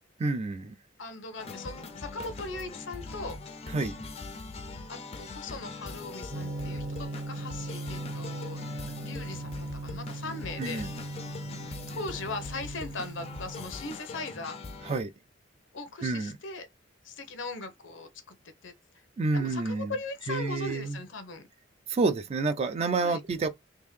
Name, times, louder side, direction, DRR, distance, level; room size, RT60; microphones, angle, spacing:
voice 1, 0.2-0.8 3.7-4.0 10.6-10.9 14.8-15.1 16.0-16.4 19.2-19.9 20.3-21.0 21.9-23.5, right 3 dB, 35° right, 0.3 m, -29 dB
voice 2, 1.0-3.4 4.9-8.7 9.0-10.9 11.9-14.6 15.7-16.7 17.0-18.3 18.6-18.7 19.3-21.5 23.0-23.2, left 3 dB, 80° left, 0.9 m, -39 dB
sound 1, 1.4-15.0, left 3 dB, 35° left, 0.5 m, -42 dB
Gong, 6.3-13.7, right 2 dB, 60° right, 0.9 m, -39 dB
3.6 x 2.6 x 3.2 m
head